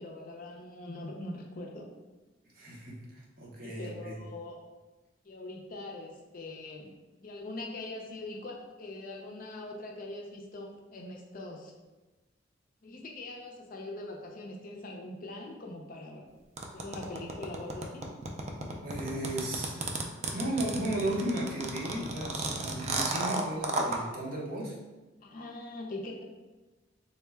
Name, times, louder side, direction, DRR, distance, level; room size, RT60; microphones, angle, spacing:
voice 1, 0.0-1.9 3.6-4.6 5.2-6.9 7.2-11.7 12.8-16.3 16.7-18.1 25.2-26.2, left 2 dB, 50° left, 0 dB, 0.5 m, -42 dB
voice 2, 2.5-4.1 18.7-19.8 20.3-24.8, right 1 dB, 50° right, -2 dB, 0.8 m, -35 dB
sound 1, 16.6-24.0, right 3 dB, 35° right, 0.4 m, -33 dB
3.6 x 2.1 x 3.4 m, 1.2 s
head